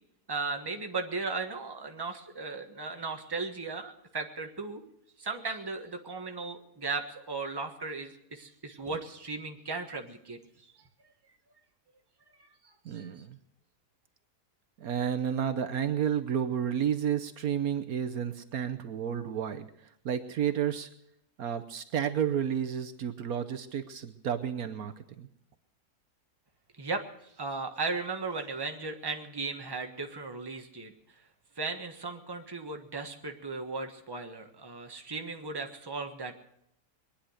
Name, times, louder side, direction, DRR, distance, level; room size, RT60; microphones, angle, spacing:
voice 1, 0.3-4.8 5.2-10.4 12.9-13.1 26.8-30.9 31.6-36.3, right 3 dB, 15° right, 4 dB, 1.3 m, -36 dB
voice 2, 12.8-13.4 14.8-19.7 20.0-20.9 21.4-25.3, right 8 dB, 70° right, 10 dB, 1.3 m, -31 dB
22.0 x 10.0 x 6.5 m, 0.77 s
omnidirectional pair, 1.7 m